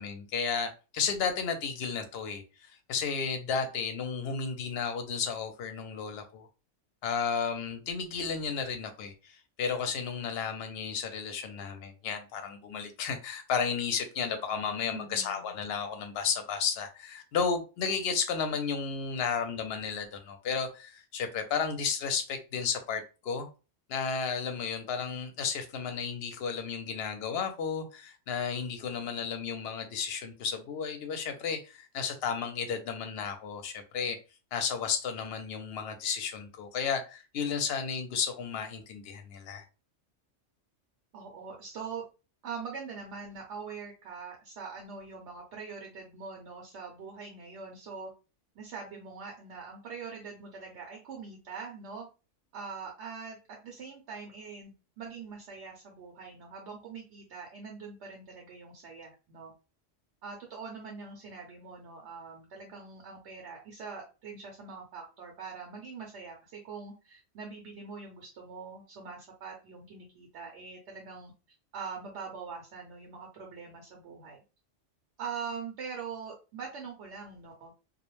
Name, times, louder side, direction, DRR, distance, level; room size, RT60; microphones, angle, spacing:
voice 1, 0.0-6.5 7.0-23.5 23.9-34.2 34.5-39.7, left 6 dB, 65° left, 0.7 m, -33 dB
voice 2, 14.9-15.6 41.1-42.0 42.4-48.1 48.6-52.1 52.5-59.5 60.2-71.3 71.7-74.4 75.2-77.7, right 5 dB, 70° right, 0.9 m, -43 dB
2.4 x 2.1 x 3.0 m
omnidirectional pair, 1.2 m